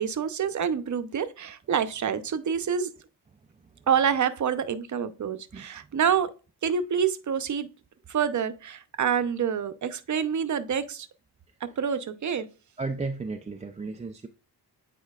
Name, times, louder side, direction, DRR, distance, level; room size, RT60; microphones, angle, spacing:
voice 1, 0.0-2.9 3.9-6.3 6.6-7.7 8.1-11.1 11.8-12.5, right 7 dB, 45° right, 0.7 m, -27 dB
voice 2, 5.5-5.9 12.8-14.3, right 3 dB, 15° right, 0.4 m, -34 dB
8.7 x 4.5 x 2.4 m
cardioid pair, 90°, 42 cm